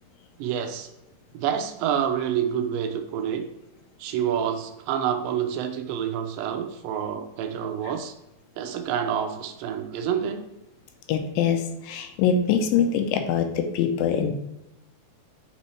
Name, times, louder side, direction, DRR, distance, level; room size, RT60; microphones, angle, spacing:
voice 1, 0.4-0.9 1.3-3.5 4.0-8.1 8.6-10.4, right 8 dB, 80° right, 6 dB, 2.3 m, -28 dB
voice 2, 11.1-14.3, left 7 dB, 85° left, 7 dB, 2.3 m, -23 dB
7.0 x 4.3 x 3.1 m, 0.91 s
omnidirectional pair, 4.0 m